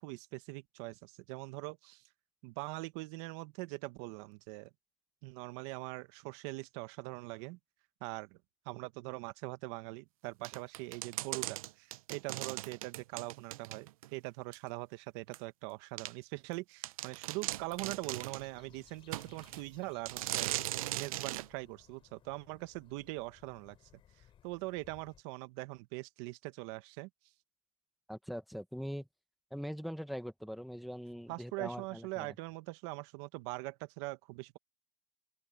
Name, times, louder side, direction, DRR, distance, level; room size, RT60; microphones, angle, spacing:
voice 1, 0.0-2.0 2.4-4.7 5.2-7.6 8.0-8.4 8.6-20.5 20.9-23.8 24.4-27.1 31.3-34.6, right 22 dB, 55° right, 1.2 m, -42 dB
sound 1, 10.4-14.1 14.5-14.6 15.3-15.4 16.0-16.1 16.5-16.6 16.8-18.5 19.1-19.6 20.1-21.5, right 16 dB, 85° right, 0.8 m, -39 dB
sound 2, 17.5-25.2, left 10 dB, 30° left, 4.7 m, -63 dB
voice 2, 28.1-29.1 29.5-32.3, equal, ahead, 1.1 m, -42 dB
open air
supercardioid pair, 140°, 18 cm